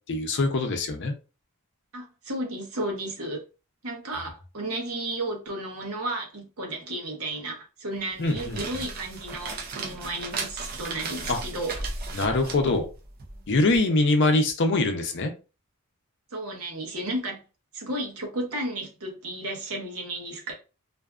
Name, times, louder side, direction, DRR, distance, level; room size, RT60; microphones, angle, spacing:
voice 1, 0.1-1.1 8.2-8.8 11.3-11.4 12.1-12.9 13.5-15.3, left 2 dB, 55° left, 0.5 m, -23 dB
voice 2, 1.9-3.4 3.8-12.0 16.3-17.4 17.7-20.5, right 1 dB, 75° right, 0.9 m, -33 dB
sound 1, 8.1-13.8, right 3 dB, 40° right, 0.5 m, -36 dB
2.5 x 2.3 x 2.3 m
head